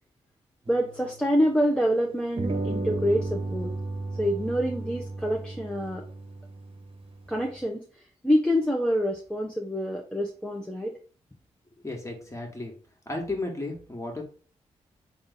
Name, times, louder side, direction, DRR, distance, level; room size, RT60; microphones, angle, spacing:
voice 1, 0.7-3.7 4.2-6.0 7.3-7.8 8.2-10.9, equal, 5° left, 0 dB, 0.7 m, -26 dB
sound 1, 0.7-1.9 2.4-7.6, right 2 dB, 45° right, 1.0 m, -35 dB
voice 2, 11.8-12.7 13.1-14.2, left 2 dB, 25° left, 1 dB, 1.6 m, -34 dB
3.8 x 2.5 x 4.0 m, 0.39 s
supercardioid pair, 45°, 13 cm